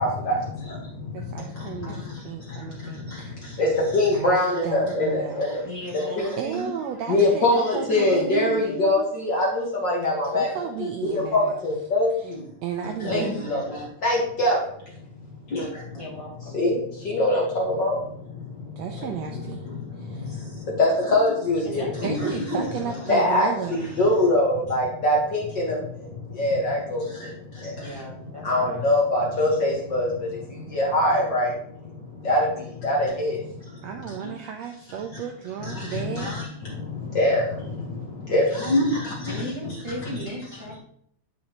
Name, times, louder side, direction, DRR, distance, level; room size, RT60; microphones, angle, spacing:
voice 1, 0.0-6.4 7.1-12.5 12.8-16.0 16.5-22.5 23.1-34.3 35.1-35.2 35.6-40.2, left 1 dB, 50° left, -3 dB, 1.5 m, -25 dB
voice 2, 1.1-3.6 4.1-4.4 4.6-5.6 6.4-8.5 10.3-11.5 12.6-13.6 18.8-19.7 20.0-20.4 22.0-23.8 33.8-36.3, right 8 dB, 85° right, 5 dB, 1.5 m, -34 dB
voice 3, 5.6-6.7 15.9-16.6 21.6-23.5 27.7-28.8 39.3-40.8, equal, 20° right, -4 dB, 0.8 m, -36 dB
9.4 x 5.3 x 2.9 m, 0.67 s
omnidirectional pair, 3.6 m